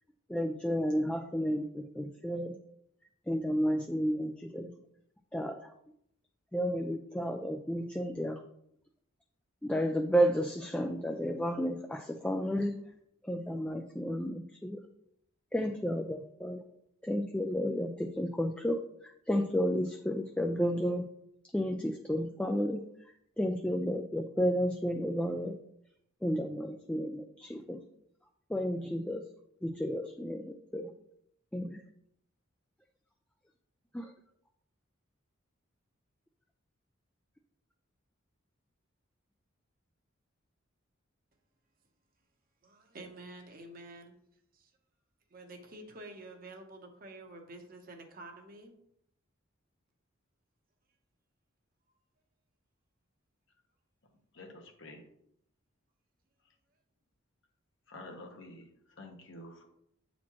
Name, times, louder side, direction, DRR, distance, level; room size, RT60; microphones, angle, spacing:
voice 1, 0.3-2.5 3.3-4.7 5.3-5.7 6.5-8.4 9.6-12.8 13.2-14.8 15.5-16.6 17.0-18.8 19.3-21.0 21.5-22.8 23.4-25.5 26.2-27.8 28.5-29.2 29.6-30.9 31.5-31.8 33.9-34.1, equal, 5° left, 4 dB, 0.3 m, -32 dB
voice 2, 42.6-44.2 44.5-44.7 45.3-48.7, right 2 dB, 45° right, 3 dB, 0.9 m, -49 dB
voice 3, 54.3-55.0 57.9-58.7 59.0-59.7, left 2 dB, 65° left, 3 dB, 1.1 m, -48 dB
8.5 x 4.2 x 3.0 m, 0.73 s
head